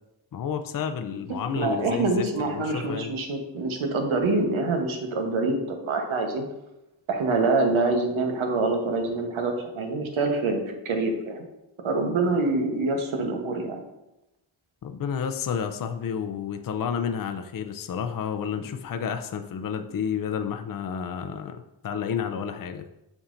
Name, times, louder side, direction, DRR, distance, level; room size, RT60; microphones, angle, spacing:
voice 1, 0.3-3.2 14.8-22.9, left 7 dB, 45° left, 7 dB, 0.5 m, -31 dB
voice 2, 1.5-6.4 7.1-11.4 11.8-13.8, right 3 dB, 80° right, 4 dB, 1.1 m, -25 dB
7.1 x 5.4 x 2.6 m, 0.90 s
cardioid pair, 75°, 47 cm